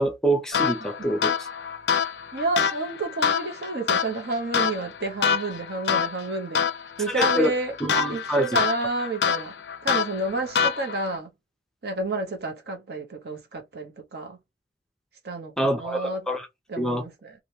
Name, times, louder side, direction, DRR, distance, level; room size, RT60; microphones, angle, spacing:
voice 1, 0.0-1.5 7.1-7.5 7.8-8.5 15.6-16.5 16.8-17.0, right 1 dB, 5° left, 0.5 m, -25 dB
sound 1, 0.5-11.2, left 7 dB, 65° left, 0.4 m, -26 dB
voice 2, 2.3-6.6 7.0-7.7 8.1-9.5 9.8-11.3 11.8-14.4 15.2-16.2 16.7-17.3, right 3 dB, 60° right, 0.8 m, -30 dB
3.2 x 2.4 x 2.7 m
head